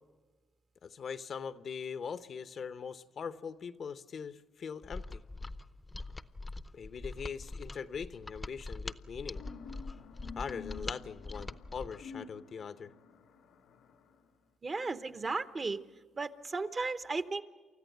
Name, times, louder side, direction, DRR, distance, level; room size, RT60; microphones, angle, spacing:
voice 1, 0.8-5.2 6.7-9.4 10.4-12.9, left 6 dB, 55° left, 12 dB, 0.8 m, -41 dB
Mechanisms, 4.8-12.0, left 2 dB, 20° left, 0.7 m, -43 dB
sound 1, 9.3-14.1, left 6 dB, 90° left, 1.8 m, -50 dB
voice 2, 14.6-15.8 16.1-17.4, right 3 dB, 35° right, 12 dB, 0.9 m, -35 dB
29.0 x 14.0 x 7.9 m, 1.4 s
cardioid pair, 90°, 0 cm